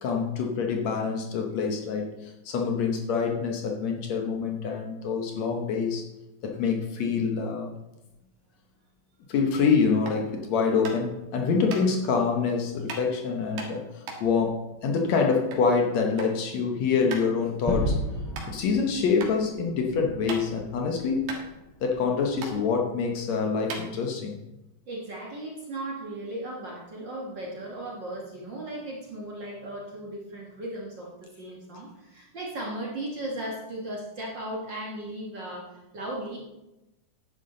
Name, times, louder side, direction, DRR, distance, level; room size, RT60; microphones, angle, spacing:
voice 1, 0.0-6.0 6.4-7.7 9.3-18.0 18.5-21.3 21.8-24.4, left 5 dB, 65° left, 2 dB, 2.1 m, -26 dB
sound 1, 10.1-10.3 10.8-11.2 11.7-11.8 12.9-13.1 13.6-15.7 16.0-16.4 16.7-16.8 17.1-17.3 17.8-17.9 18.3-18.5 19.2-19.3 19.7-20.7 21.0-21.1 21.3-22.1 22.4-22.5 23.2-23.3 23.6-24.4, right 4 dB, 85° right, 3.2 m, -37 dB
Gunshot gunfire / Fireworks / Boom, 17.7-22.5, equal, 5° left, 3.9 m, -34 dB
voice 2, 24.9-36.4, right 1 dB, 45° right, -3 dB, 1.8 m, -36 dB
10.5 x 9.8 x 3.8 m, 0.97 s
omnidirectional pair, 3.7 m